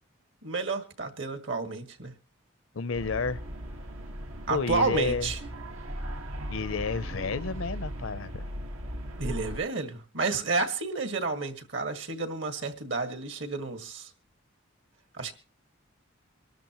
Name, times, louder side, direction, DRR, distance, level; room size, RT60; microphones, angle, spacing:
voice 1, 0.4-2.1 4.5-5.4 9.2-14.1 15.1-15.3, right 3 dB, 65° right, 1.9 m, -31 dB
voice 2, 2.7-3.4 4.5-5.3 6.5-8.5, left 4 dB, 75° left, 0.6 m, -31 dB
sound 1, 2.9-9.6, equal, 85° right, 1.8 m, -38 dB
24.5 x 13.0 x 3.1 m
head